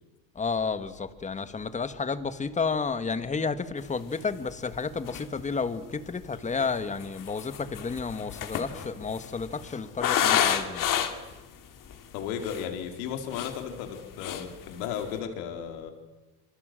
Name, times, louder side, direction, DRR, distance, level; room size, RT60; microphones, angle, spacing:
voice 1, 0.3-10.9, left 5 dB, 15° left, 12 dB, 1.6 m, -31 dB
sound 1, 4.2-4.3 4.7-4.8 5.0-5.5 6.3-11.4 11.9-12.0 12.3-12.7 13.1-14.0 14.2-14.5 14.8-15.1, left 9 dB, 45° left, 2.9 m, -29 dB
voice 2, 12.1-15.9, left 8 dB, 80° left, 5 dB, 4.0 m, -35 dB
27.0 x 25.0 x 7.7 m, 1.1 s
cardioid pair, 130°, 43 cm